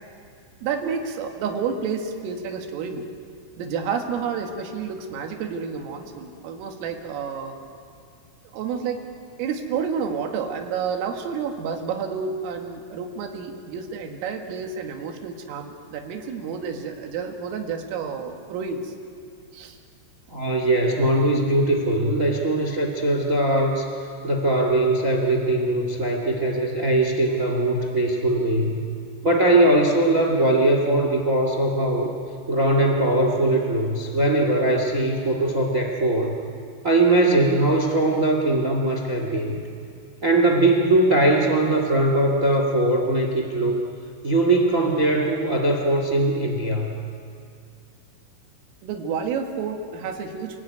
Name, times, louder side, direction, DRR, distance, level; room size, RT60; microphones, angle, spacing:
voice 1, 0.6-3.0 3.6-7.5 8.5-9.0 9.4-18.9 19.5-19.8 48.8-50.6, right 6 dB, 85° right, 3 dB, 4.6 m, -30 dB
voice 2, 20.3-23.9 24.2-28.8 29.2-32.1 32.5-36.3 36.8-39.6 40.2-43.8 44.2-46.9, right 1 dB, 70° right, 3 dB, 0.7 m, -21 dB
29.5 x 18.5 x 9.4 m, 2.3 s
omnidirectional pair, 5.8 m